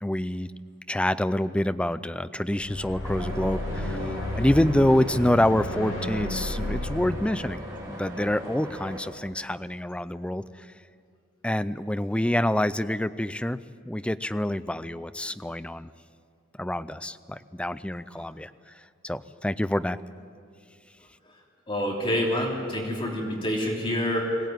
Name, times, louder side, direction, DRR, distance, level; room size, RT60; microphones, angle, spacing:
voice 1, 0.0-0.5 0.9-4.0 4.3-7.6 7.9-10.4 11.4-13.6 13.9-15.9 16.6-18.5 19.0-20.0, left 1 dB, 5° left, 14 dB, 0.4 m, -26 dB
sound 1, 2.5-8.8, left 1 dB, 85° left, 5.8 m, -33 dB
sound 2, 3.0-9.0, equal, 20° right, 3.9 m, -39 dB
voice 2, 21.7-24.4, left 1 dB, 25° left, -1 dB, 3.2 m, -27 dB
22.0 x 17.0 x 9.3 m, 2.3 s
head